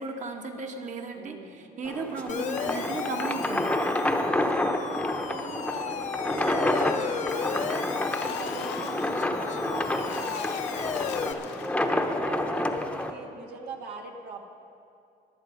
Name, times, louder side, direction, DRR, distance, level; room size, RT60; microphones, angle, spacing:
voice 1, 0.0-3.8, right 3 dB, 45° right, 3 dB, 1.5 m, -35 dB
voice 2, 1.1-1.7 5.2-7.9 8.3-14.4, right 3 dB, 80° right, 2 dB, 1.8 m, -42 dB
sound 1, 1.8-13.1, left 1 dB, 5° left, 0.9 m, -29 dB
Siren, 2.3-11.3, left 7 dB, 45° left, 0.7 m, -35 dB
Splash splatter, 7.1-12.0, left 10 dB, 85° left, 0.7 m, -43 dB
22.5 x 7.6 x 5.2 m, 2.5 s
cardioid pair, 110°, 17 cm